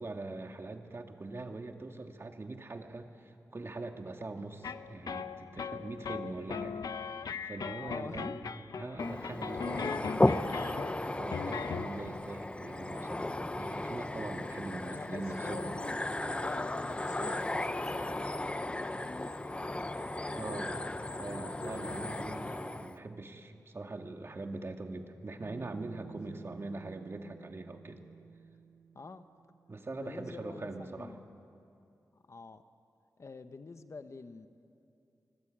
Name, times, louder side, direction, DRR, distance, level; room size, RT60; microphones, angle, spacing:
voice 1, 0.0-10.4 11.0-15.7 20.3-20.8 21.2-28.0 29.7-31.1, right 2 dB, 40° right, 5 dB, 1.8 m, -42 dB
sound 1, 4.6-12.1, left 6 dB, 85° left, 0.7 m, -39 dB
voice 2, 7.8-8.4 14.8-16.0 16.4-19.9 20.3-20.6 26.3-26.4 28.9-29.2 30.0-31.2 32.1-32.6 33.2-34.5, left 4 dB, 50° left, 10 dB, 1.0 m, -46 dB
sound 2, 9.0-23.0, left 1 dB, 20° left, 0.7 m, -35 dB
Bass guitar, 25.4-29.8, right 6 dB, 80° right, 0.8 m, -52 dB
24.5 x 19.5 x 8.8 m, 2.6 s
wide cardioid pair, 95°, 6 cm